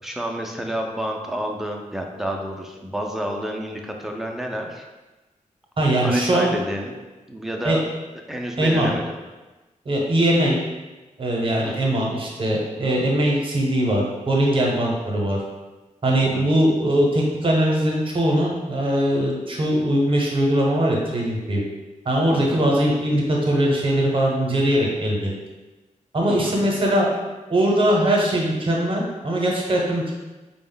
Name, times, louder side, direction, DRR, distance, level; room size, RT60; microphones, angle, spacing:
voice 1, 0.0-4.9 6.0-6.9 7.3-7.8 8.3-9.2 11.6-12.0 16.2-16.4 22.3-22.6 26.3-26.6, right 1 dB, 5° right, 1 dB, 0.3 m, -29 dB
voice 2, 5.8-6.5 7.6-7.8 8.6-8.9 9.9-10.6 11.2-15.4 16.0-21.6 22.1-25.3 26.1-27.1 27.5-30.1, right 1 dB, 40° right, -1 dB, 0.7 m, -21 dB
3.8 x 2.0 x 3.7 m, 1.2 s
wide cardioid pair, 175°, 14 cm